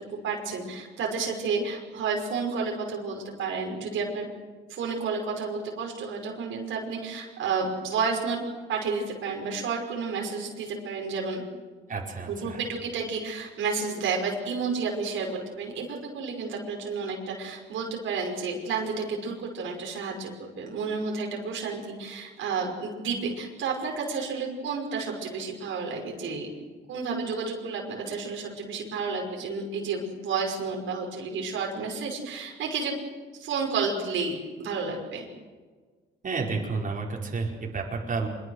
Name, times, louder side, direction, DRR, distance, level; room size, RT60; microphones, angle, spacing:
voice 1, 0.1-4.3 4.7-8.4 8.7-11.4 12.3-26.5 26.9-32.9 33.4-35.3, right 4 dB, 80° right, 0 dB, 5.7 m, -31 dB
voice 2, 11.9-12.6 36.2-38.3, right 4 dB, 40° right, -2 dB, 5.3 m, -31 dB
25.0 x 23.0 x 6.6 m, 1.4 s
cardioid pair, 90°, 20 cm